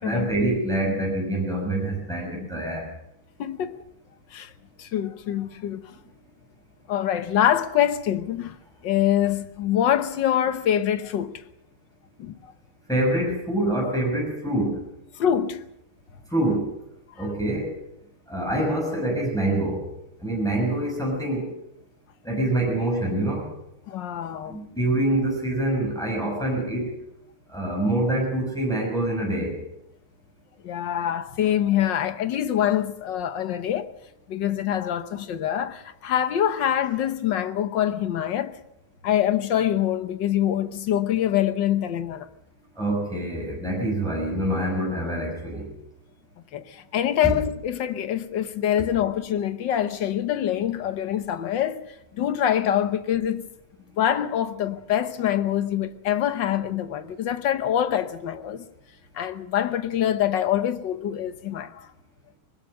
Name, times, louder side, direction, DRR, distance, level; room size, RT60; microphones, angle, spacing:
voice 1, 0.0-2.8 12.9-14.8 16.3-16.6 17.2-17.7 18.3-19.8 20.2-21.5 22.2-23.5 24.5-26.9 27.5-29.5 42.8-45.7 47.2-47.3, right 1 dB, ahead, 5.9 m, -25 dB
voice 2, 3.4-3.8 4.3-4.5 4.8-5.9 6.9-8.6 8.8-11.4 12.2-12.3 15.2-15.7 17.2-17.3 23.9-24.6 30.6-33.9 34.3-38.5 39.0-42.3 46.5-51.8 52.1-53.5 54.0-58.6 59.1-61.9, left 10 dB, 65° left, 1.7 m, -25 dB
21.0 x 19.5 x 6.6 m
omnidirectional pair, 2.2 m